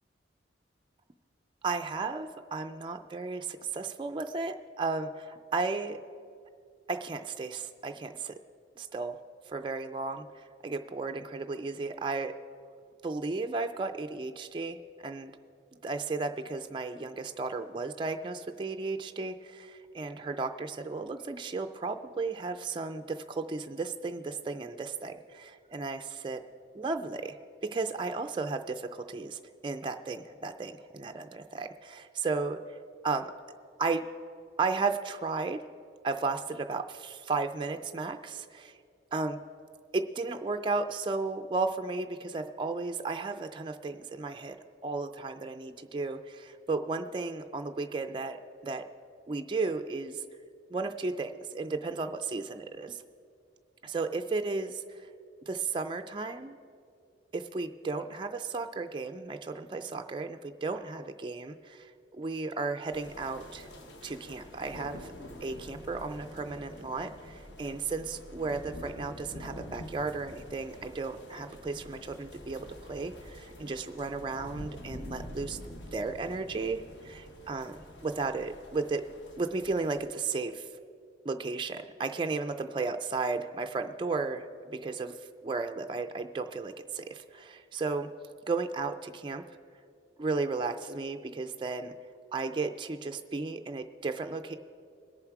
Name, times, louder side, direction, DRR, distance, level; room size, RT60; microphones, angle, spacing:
voice 1, 1.6-6.0 6.9-8.3 8.8-9.2 9.5-12.3 13.0-15.3 15.8-26.4 26.7-27.4 27.7-32.8 33.0-33.3 33.8-34.1 34.6-35.6 36.0-38.8 39.1-39.4 39.9-44.6 44.8-48.9 49.3-50.2 50.7-53.0 53.8-55.1 55.5-56.6 57.3-63.7 64.0-65.1 65.4-79.0 79.4-80.7 81.2-88.1 88.5-89.4 90.2-91.9 92.3-94.6, right 3 dB, 25° right, 6 dB, 0.3 m, -34 dB
sound 1, 62.9-80.1, left 1 dB, 65° left, 1.1 m, -47 dB
20.5 x 7.1 x 4.6 m, 2.4 s
head